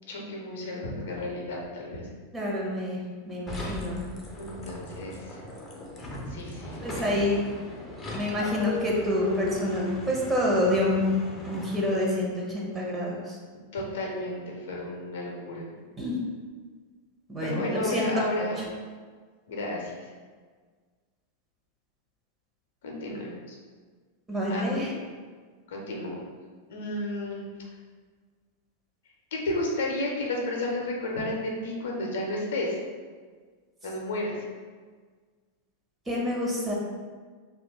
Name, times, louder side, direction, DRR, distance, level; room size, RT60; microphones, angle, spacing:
voice 1, 0.1-2.0 4.4-5.5 6.3-7.2 13.7-15.6 17.4-18.8 19.5-20.1 22.8-23.6 24.5-24.9 25.7-26.2 26.7-27.5 29.3-32.8 33.8-34.4, left 1 dB, 60° left, -1 dB, 0.7 m, -32 dB
voice 2, 2.3-3.0 3.2-4.0 6.8-7.4 8.1-11.0 11.4-13.4 16.0-16.1 17.3-18.1 18.4-18.5 24.3-24.9 36.1-36.7, left 1 dB, 15° right, -4 dB, 0.9 m, -28 dB
sound 1, 3.5-12.2, left 1 dB, 20° left, 0.6 m, -37 dB
2.9 x 2.4 x 4.1 m, 1.5 s
figure-of-eight pair, 90°, 0 cm